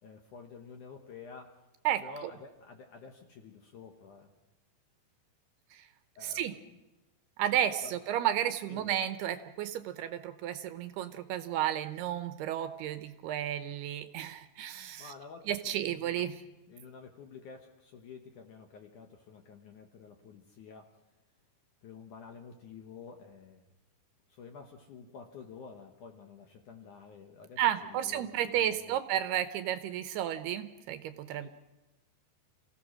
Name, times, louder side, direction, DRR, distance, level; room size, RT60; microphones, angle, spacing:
voice 1, 0.0-1.6 2.0-4.3 6.2-6.8 7.8-8.0 8.7-9.0 14.7-16.3 16.7-21.0 21.8-23.6 24.3-29.0 31.3-31.5, left 5 dB, 65° left, 4 dB, 2.1 m, -50 dB
voice 2, 6.2-6.5 7.4-15.1 15.5-16.4 27.6-31.5, right 11 dB, 75° right, 10 dB, 2.6 m, -32 dB
28.5 x 16.0 x 6.3 m, 1.1 s
omnidirectional pair, 5.0 m